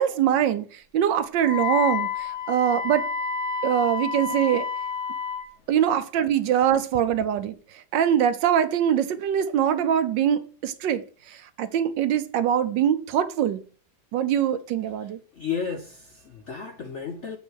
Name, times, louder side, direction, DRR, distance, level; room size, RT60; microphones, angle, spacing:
voice 1, 0.0-3.0 3.6-4.7 5.7-11.0 11.3-13.6 14.1-15.2, right 9 dB, 75° right, 1.3 m, -23 dB
Wind instrument woodwind instrument, 1.4-5.5, left 6 dB, 20° left, 0.8 m, -29 dB
voice 2, 15.3-17.4, left 6 dB, 60° left, 0.8 m, -33 dB
7.8 x 5.4 x 6.2 m
omnidirectional pair, 2.1 m